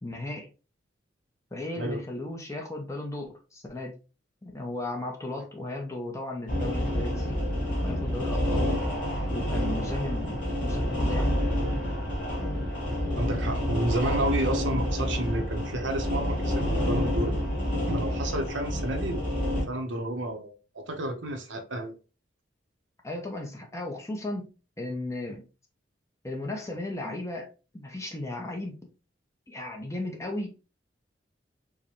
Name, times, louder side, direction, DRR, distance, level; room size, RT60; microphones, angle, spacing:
voice 1, 0.0-0.5 1.5-3.9 4.4-7.4 7.8-8.7 9.3-11.3 23.0-25.5 26.2-27.5 27.7-28.8 29.5-30.5, left 2 dB, 15° left, 0.6 m, -35 dB
sound 1, 6.5-19.6, equal, 50° left, 2.0 m, -28 dB
voice 2, 13.1-17.4 17.8-19.2 19.6-21.9, right 1 dB, 85° right, 0.8 m, -31 dB
4.6 x 2.1 x 3.0 m
head